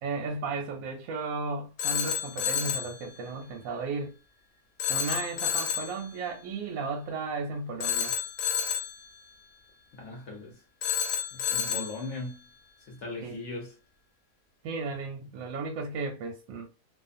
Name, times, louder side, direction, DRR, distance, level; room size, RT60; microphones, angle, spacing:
voice 1, 0.0-4.2 4.9-8.1 11.7-11.9 13.2-13.4 14.6-16.7, right 4 dB, 70° right, 0.9 m, -34 dB
Telephone, 1.8-3.0 4.8-6.0 7.8-9.0 10.8-12.0, left 8 dB, 80° left, 1.2 m, -30 dB
voice 2, 9.9-10.6 11.3-12.4 12.9-13.7, left 3 dB, 60° left, 0.8 m, -39 dB
2.4 x 2.4 x 2.5 m
omnidirectional pair, 1.7 m